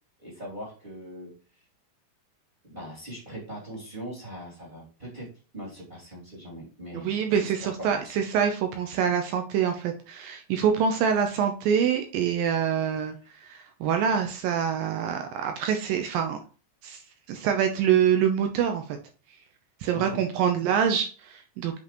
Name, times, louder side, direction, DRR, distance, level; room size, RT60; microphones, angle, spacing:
voice 1, 0.2-1.3 2.6-5.3 5.5-8.1 19.9-20.2, right 1 dB, 15° right, -4 dB, 2.3 m, -40 dB
voice 2, 7.0-13.2 13.4-16.4 16.8-17.0 17.3-18.8 19.8-21.8, right 8 dB, 80° right, 5 dB, 2.0 m, -25 dB
8.2 x 5.3 x 3.0 m, 0.37 s
omnidirectional pair, 5.0 m